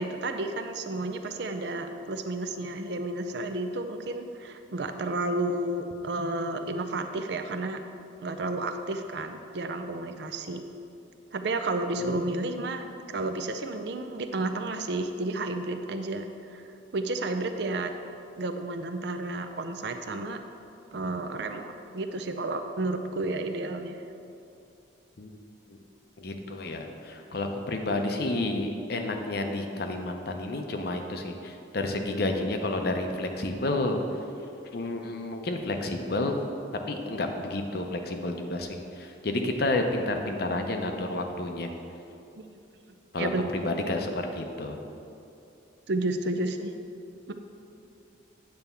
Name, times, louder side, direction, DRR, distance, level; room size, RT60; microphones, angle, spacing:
voice 1, 0.0-7.8 8.2-10.6 11.3-16.6 16.9-17.9 18.4-20.4 20.9-24.0 42.4-42.5 43.2-43.4 45.9-46.7, right 2 dB, 60° right, 6 dB, 0.5 m, -31 dB
voice 2, 12.0-12.4 25.2-25.3 25.7-25.8 26.2-34.0 34.7-36.4 36.9-41.7 43.1-44.8, left 2 dB, 50° left, 4 dB, 0.6 m, -30 dB
9.1 x 3.4 x 6.8 m, 2.7 s
head